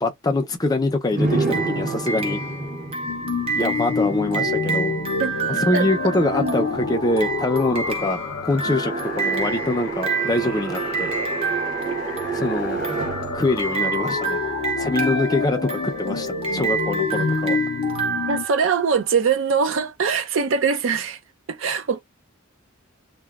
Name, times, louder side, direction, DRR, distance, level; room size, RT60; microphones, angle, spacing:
voice 1, 0.0-2.4 3.5-4.9 5.5-11.1 12.3-12.8 13.3-14.4 14.8-17.6, left 2 dB, 20° left, 0.4 m, -24 dB
sound 1, 1.1-14.9, right 3 dB, 45° right, 0.9 m, -31 dB
sound 2, 1.5-19.1, right 4 dB, 30° right, 0.7 m, -29 dB
sound 3, 3.1-18.5, left 5 dB, 75° left, 0.5 m, -29 dB
voice 2, 6.3-6.7 18.3-21.2 21.5-22.0, right 5 dB, 65° right, 0.5 m, -22 dB
2.8 x 2.1 x 2.3 m
head